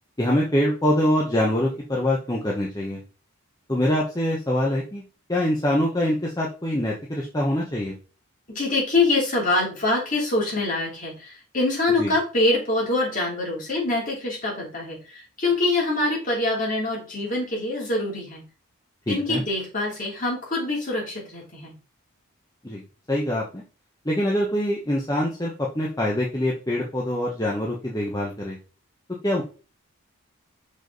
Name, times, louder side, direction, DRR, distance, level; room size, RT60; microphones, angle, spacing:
voice 1, 0.2-3.0 3.7-5.0 5.3-7.9 12.0-12.1 19.1-19.4 22.6-22.8 23.1-23.6 24.0-28.6 29.2-29.4, left 1 dB, 15° left, -3 dB, 1.0 m, -24 dB
voice 2, 8.5-18.4 19.1-21.7, left 2 dB, 35° left, -3 dB, 3.1 m, -25 dB
6.1 x 5.3 x 3.9 m, 0.34 s
head